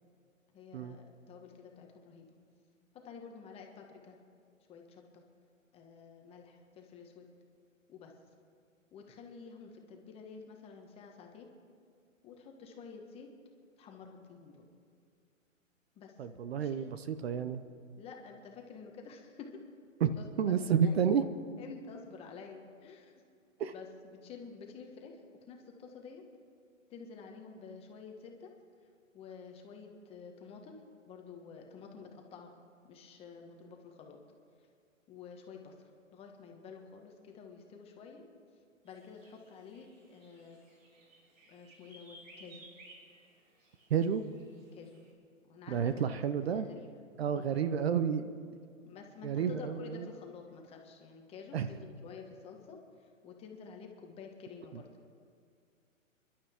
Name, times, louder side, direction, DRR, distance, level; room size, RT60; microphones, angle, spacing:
voice 1, 0.5-2.3 3.0-4.2 4.7-5.2 5.7-7.3 7.9-8.1 8.9-11.5 12.2-13.3 13.8-14.7 15.9-16.1 16.6-16.9 18.0-19.6 20.2-21.1 21.6-23.3 23.7-26.2 26.9-28.5 29.1-30.8 31.0-32.5 32.8-34.2 34.6-34.7 35.1-38.2 38.8-40.6 41.5-42.7 44.7-45.0 45.5-46.9 47.2-47.7 48.9-54.9, left 5 dB, 15° left, 2 dB, 1.3 m, -50 dB
voice 2, 16.2-17.6 20.0-21.2 23.6-23.7 43.9-44.2 45.7-46.7 47.2-48.3 49.2-50.1 51.5-51.7 54.7-54.8, right 7 dB, 50° right, 11 dB, 0.8 m, -30 dB
sound 1, 38.9-45.1, right 1 dB, 70° right, 5.2 m, -59 dB
30.0 x 11.5 x 3.6 m, 2.3 s
hypercardioid pair, 150°, 40 cm